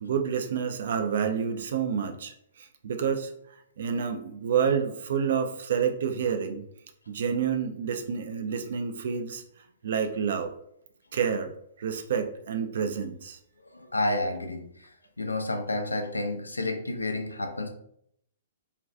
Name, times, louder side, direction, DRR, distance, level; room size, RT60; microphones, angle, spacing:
voice 1, 0.0-3.3 3.8-6.7 7.1-9.4 9.8-10.5 11.1-11.5 11.8-13.4, right 7 dB, 60° right, 7 dB, 0.3 m, -28 dB
voice 2, 13.7-14.9 15.2-17.7, left 2 dB, 85° left, 5 dB, 0.4 m, -30 dB
2.4 x 2.2 x 2.5 m, 0.70 s
figure-of-eight pair, 115°, 0 cm